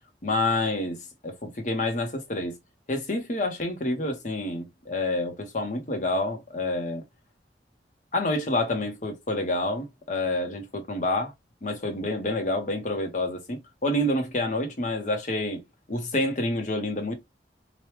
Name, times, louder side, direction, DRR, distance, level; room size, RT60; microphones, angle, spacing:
voice 1, 0.2-2.6 2.9-7.0 8.1-11.3 11.6-15.6 15.9-17.1, left 1 dB, 45° left, 0.8 m, -28 dB
2.9 x 2.3 x 3.1 m
head